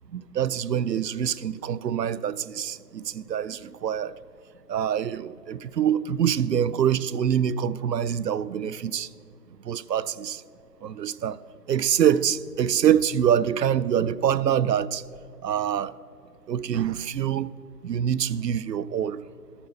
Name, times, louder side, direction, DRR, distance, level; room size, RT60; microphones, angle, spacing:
voice 1, 0.1-4.1 4.7-9.1 9.7-10.4 10.8-11.4 11.7-15.0 15.4-15.9 16.5-17.5 17.8-19.2, right 9 dB, 90° right, 18 dB, 0.5 m, -25 dB
13.0 x 6.9 x 5.6 m, 2.5 s
figure-of-eight pair, 160°, 48 cm